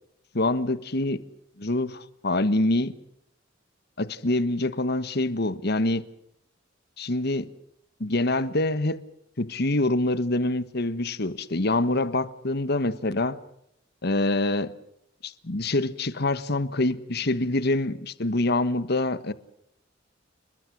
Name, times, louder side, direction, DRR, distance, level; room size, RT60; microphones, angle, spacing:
voice 1, 0.3-1.2 1.6-3.0 4.0-6.0 7.0-7.5 8.0-9.0 9.4-13.4 14.0-14.7 15.2-19.3, left 2 dB, 60° left, 1.4 m, -25 dB
29.5 x 21.5 x 6.3 m
head